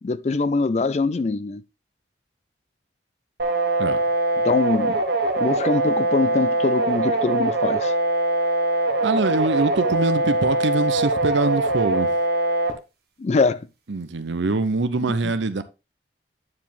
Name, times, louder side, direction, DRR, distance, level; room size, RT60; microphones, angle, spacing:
voice 1, 0.0-1.6 4.4-5.0 5.4-7.9 13.2-13.7, left 3 dB, 35° left, 0.3 m, -23 dB
sound 1, 3.4-12.7, right 2 dB, 55° right, 1.3 m, -22 dB
voice 2, 9.0-12.1 13.9-15.6, right 3 dB, 80° right, 0.7 m, -23 dB
9.5 x 4.8 x 3.6 m
head